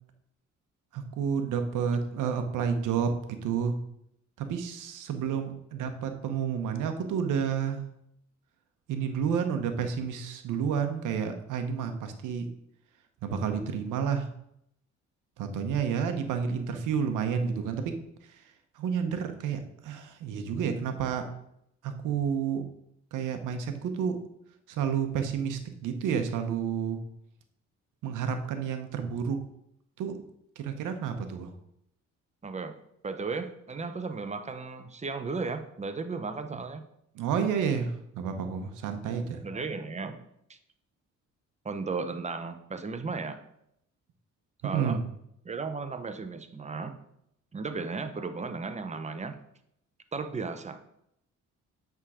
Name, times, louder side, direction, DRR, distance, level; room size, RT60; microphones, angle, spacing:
voice 1, 0.9-3.7 4.4-7.8 8.9-12.5 13.2-14.3 15.4-18.0 18.3-18.4 18.7-21.3 21.8-22.6 23.1-24.2 24.7-27.0 28.0-29.4 30.0-30.2 30.6-31.5 37.1-39.5 44.6-45.0, right 7 dB, 85° right, 7 dB, 1.0 m, -30 dB
voice 2, 32.4-32.8 33.0-36.8 39.4-40.2 40.5-40.6 41.6-43.4 44.6-45.0 45.4-46.9 47.5-49.4 50.1-50.8, right 4 dB, 25° right, 8 dB, 0.8 m, -35 dB
8.5 x 3.7 x 4.9 m, 0.76 s
cardioid pair, 90°, 30 cm